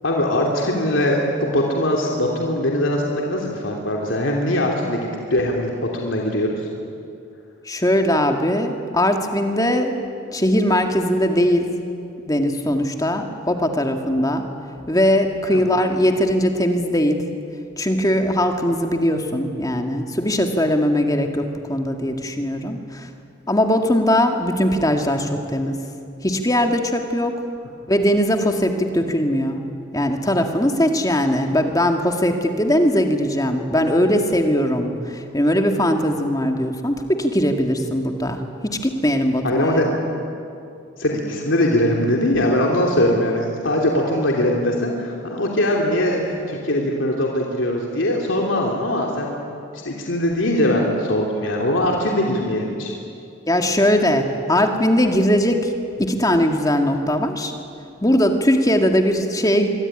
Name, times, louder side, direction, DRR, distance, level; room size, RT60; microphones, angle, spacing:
voice 1, 0.0-6.7 15.5-15.7 39.4-39.9 41.0-49.3 49.7-52.9, left 1 dB, 75° left, -1 dB, 3.1 m, -21 dB
voice 2, 7.7-9.9 10.3-11.7 12.3-14.5 14.9-17.2 17.8-21.4 21.7-23.1 23.5-25.8 26.2-27.4 27.9-29.6 29.9-39.7 53.5-55.7 56.0-57.5 58.0-59.7, equal, 20° left, 4 dB, 2.0 m, -20 dB
25.5 x 22.5 x 10.0 m, 2.5 s
head